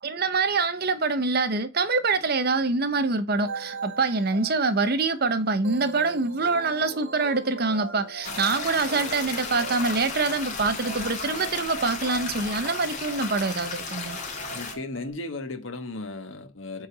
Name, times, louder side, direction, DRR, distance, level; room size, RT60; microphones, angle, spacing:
voice 1, 0.0-14.2, right 3 dB, 45° right, 0.9 m, -25 dB
sound 1, 3.5-15.1, right 5 dB, 65° right, 1.5 m, -40 dB
sound 2, 8.2-14.7, left 4 dB, 35° left, 2.0 m, -34 dB
voice 2, 14.5-16.9, left 2 dB, 65° left, 1.4 m, -35 dB
8.3 x 4.0 x 6.0 m
head